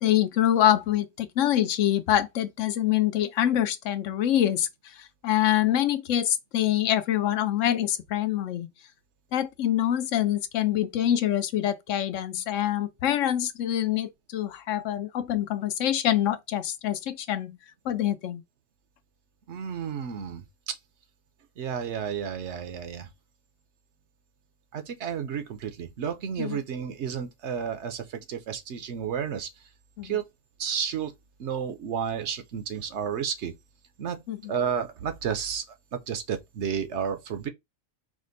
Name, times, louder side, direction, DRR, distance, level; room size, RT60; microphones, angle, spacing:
voice 1, 0.0-4.7 5.2-8.7 9.3-17.6 17.9-18.4 26.4-26.6 30.0-30.2 34.3-34.5, left 11 dB, 80° left, 1.0 m, -25 dB
voice 2, 19.5-20.8 21.6-23.1 24.7-29.5 30.0-30.2 30.6-31.1 31.4-33.5 34.0-34.2 34.5-35.6 35.9-37.5, right 7 dB, 65° right, 0.9 m, -31 dB
5.0 x 2.1 x 3.9 m
omnidirectional pair, 1.3 m